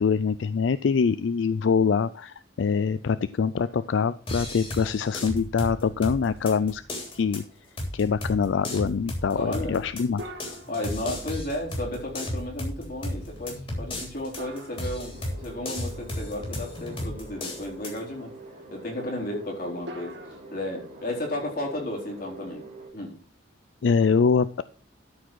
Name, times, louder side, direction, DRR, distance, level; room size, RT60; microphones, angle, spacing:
voice 1, 0.0-6.8 7.1-7.4 7.9-10.2 23.8-24.6, left 5 dB, 75° left, 15 dB, 0.4 m, -24 dB
sound 1, 3.6-4.5 5.0-5.1 6.9-7.8 10.2-11.8 14.4-15.7 19.9-20.4, equal, 65° right, 1.9 m, -45 dB
sound 2, 4.3-18.0, left 1 dB, 30° left, 3.2 m, -35 dB
voice 2, 9.3-9.9 10.7-18.3 18.7-20.1 20.5-22.6 22.9-23.2, left 1 dB, 50° left, -2 dB, 4.0 m, -33 dB
sound 3, 15.1-22.9, right 1 dB, 40° right, 2.2 m, -45 dB
13.0 x 5.0 x 6.2 m, 0.41 s
head